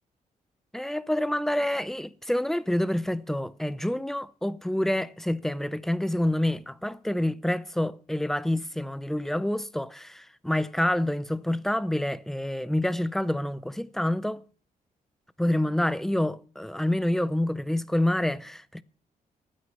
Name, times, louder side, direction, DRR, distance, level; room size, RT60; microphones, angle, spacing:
voice 1, 0.7-14.4 15.4-18.8, left 1 dB, ahead, 0.6 m, -27 dB
15.0 x 9.5 x 5.4 m
wide cardioid pair, 160°, 15 cm